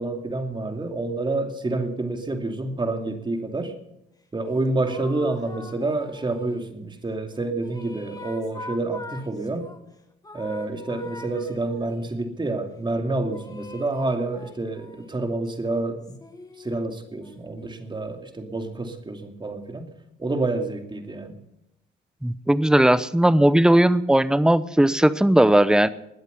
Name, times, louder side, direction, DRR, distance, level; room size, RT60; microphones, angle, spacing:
voice 1, 0.0-3.8 4.3-9.7 10.3-16.0 16.6-19.9 20.2-21.4, right 2 dB, 25° right, 5 dB, 2.6 m, -28 dB
sound 1, 4.5-6.7 7.3-9.8 10.2-12.1 13.3-15.2 16.0-18.3, left 2 dB, 20° left, 2.1 m, -43 dB
voice 2, 22.2-25.9, right 1 dB, 5° right, 15 dB, 0.8 m, -18 dB
21.0 x 8.1 x 7.0 m, 0.86 s
cardioid pair, 90°, 20 cm